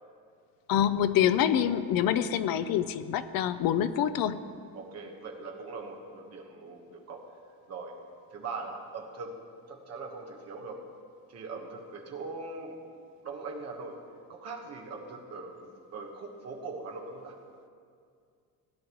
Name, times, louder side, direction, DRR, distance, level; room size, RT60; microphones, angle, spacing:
voice 1, 0.7-4.4, left 10 dB, 70° left, 13 dB, 0.5 m, -26 dB
voice 2, 4.7-7.2 7.7-7.9 8.3-9.3 9.7-10.8 11.3-12.8 13.2-13.9 14.3-17.4, right 3 dB, 45° right, 0 dB, 1.4 m, -41 dB
16.5 x 9.9 x 3.1 m, 2.3 s
cardioid pair, 180°, 37 cm